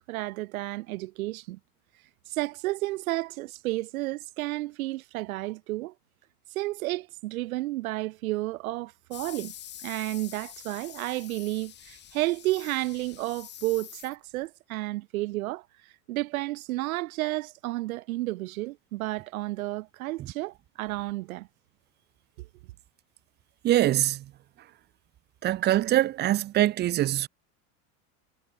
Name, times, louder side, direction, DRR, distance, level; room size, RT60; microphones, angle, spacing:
voice 1, 0.1-1.6 2.3-5.9 6.6-9.5 9.8-15.6 16.1-21.5 22.4-22.5, right 19 dB, 80° right, 7.0 m, -32 dB
sound 1, 9.1-14.5, left 10 dB, 25° left, 6.1 m, -46 dB
voice 2, 23.6-24.3 25.4-27.3, right 14 dB, 25° right, 1.0 m, -23 dB
supercardioid pair, 170°, 42 cm